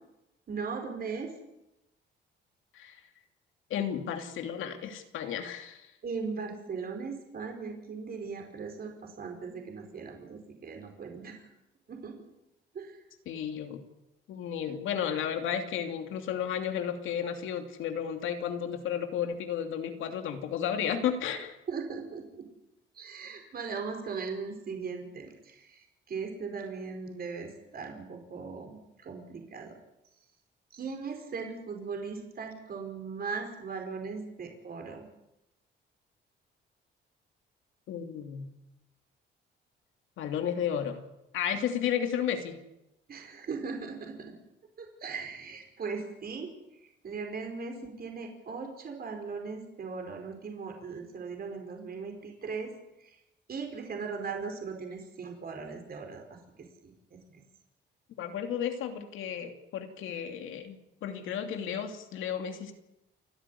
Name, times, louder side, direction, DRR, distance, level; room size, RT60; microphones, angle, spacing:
voice 1, 0.5-1.3 6.0-11.5 11.9-12.2 12.7-13.0 21.7-22.4 22.9-29.7 30.7-35.0 43.1-44.3 44.8-46.5 46.8-52.7 53.0-53.2 53.5-56.2 56.6-57.4, right 5 dB, 50° right, 4 dB, 4.9 m, -39 dB
voice 2, 3.7-5.9 13.3-13.8 14.3-21.6 37.9-38.5 40.2-41.0 41.3-42.6 58.2-62.7, left 8 dB, 85° left, 6 dB, 2.8 m, -33 dB
28.5 x 11.5 x 9.9 m, 0.92 s
cardioid pair, 90°, 20 cm